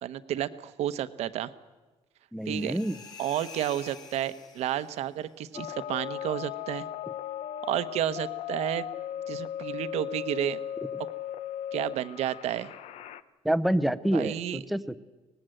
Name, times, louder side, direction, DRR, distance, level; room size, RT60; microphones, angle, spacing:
voice 1, 0.0-1.5 2.5-2.8 3.2-6.9 7.7-8.9 9.3-10.6 11.7-12.7 14.1-14.6, right 11 dB, 70° right, 13 dB, 1.0 m, -31 dB
voice 2, 2.3-3.0 13.4-15.0, right 1 dB, ahead, 13 dB, 0.7 m, -27 dB
sound 1, 2.4-5.1, left 6 dB, 35° left, 3.0 m, -48 dB
sound 2, 5.5-13.2, left 10 dB, 70° left, 0.9 m, -37 dB
24.0 x 19.5 x 7.8 m, 1.2 s
cardioid pair, 155°, 11 cm